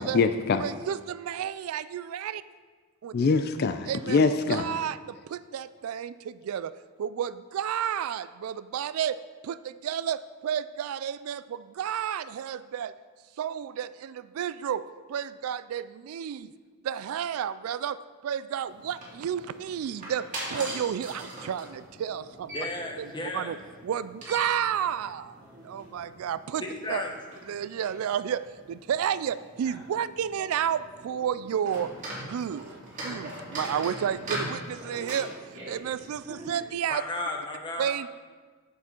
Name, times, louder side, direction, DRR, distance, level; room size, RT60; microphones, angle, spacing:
voice 1, 0.0-0.6 3.1-4.7, left 4 dB, 45° left, 9 dB, 0.3 m, -24 dB
voice 2, 0.6-2.4 3.0-3.1 3.9-4.2 4.5-6.7 7.0-9.2 9.4-12.9 13.4-14.8 15.1-16.5 16.8-22.5 23.0-23.6 23.8-25.3 25.6-26.6 26.9-27.0 27.5-31.9 32.2-35.3 35.6-37.0 37.8-38.1, right 9 dB, 80° right, 15 dB, 0.3 m, -31 dB
sound 1, 18.6-36.6, right 1 dB, 35° right, 2.9 m, -41 dB
voice 3, 22.5-23.6 26.6-27.1 36.9-38.0, left 2 dB, 20° left, 1 dB, 1.0 m, -34 dB
8.4 x 6.8 x 4.4 m, 1.5 s
head